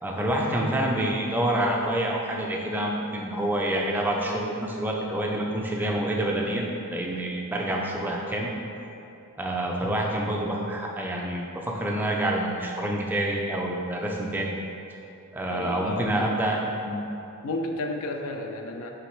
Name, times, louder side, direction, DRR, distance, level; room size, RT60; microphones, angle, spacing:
voice 1, 0.0-6.6 6.9-8.5 9.4-14.6 15.3-17.0, right 1 dB, 10° right, -2 dB, 0.3 m, -27 dB
voice 2, 15.5-16.4 17.4-18.9, left 2 dB, 65° left, 3 dB, 0.4 m, -32 dB
4.2 x 3.1 x 3.0 m, 2.8 s
head